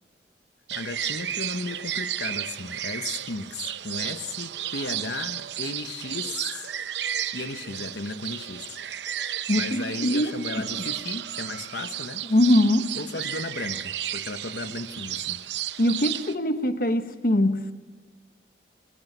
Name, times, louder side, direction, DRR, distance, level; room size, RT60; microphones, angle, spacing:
voice 1, 0.7-6.7 7.3-8.8 9.2-12.2 12.9-15.4, left 3 dB, 75° left, 9 dB, 1.1 m, -35 dB
sound 1, 0.7-16.3, right 11 dB, 80° right, 0.7 m, -33 dB
voice 2, 9.5-10.3 12.3-12.9 15.8-17.7, left 1 dB, 50° left, 8 dB, 1.1 m, -22 dB
23.0 x 20.0 x 5.6 m, 1.4 s
head